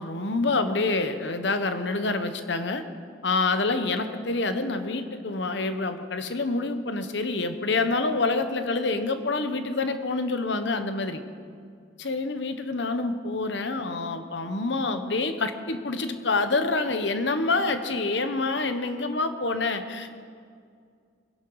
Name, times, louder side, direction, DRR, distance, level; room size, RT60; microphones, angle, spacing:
voice 1, 0.0-2.8 3.2-11.2 12.0-20.1, left 3 dB, 65° left, 9 dB, 1.1 m, -27 dB
23.5 x 11.0 x 4.8 m, 2.2 s
head